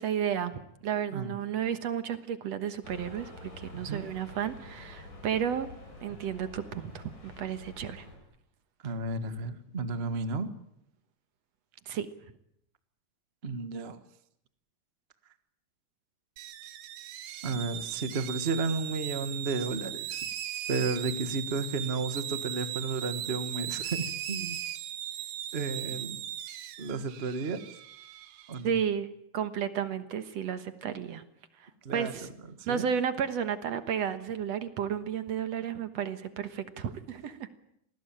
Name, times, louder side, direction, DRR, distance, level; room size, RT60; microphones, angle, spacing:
voice 1, 0.0-5.7 6.0-8.1 11.9-12.1 28.6-31.2 31.6-32.3 32.7-37.5, right 8 dB, 60° right, 11 dB, 2.3 m, -32 dB
sound 1, 2.8-8.2, left 2 dB, 85° left, 9.6 m, -48 dB
voice 2, 8.8-10.5 13.4-14.0 17.4-20.3 20.7-24.6 25.5-26.2 26.8-27.6 28.5-28.8 31.8-32.3 32.6-32.8, right 3 dB, 35° right, 10 dB, 1.0 m, -33 dB
sound 2, 16.4-28.6, right 11 dB, 80° right, 2.8 m, -38 dB
27.5 x 19.0 x 8.9 m, 0.75 s
omnidirectional pair, 3.6 m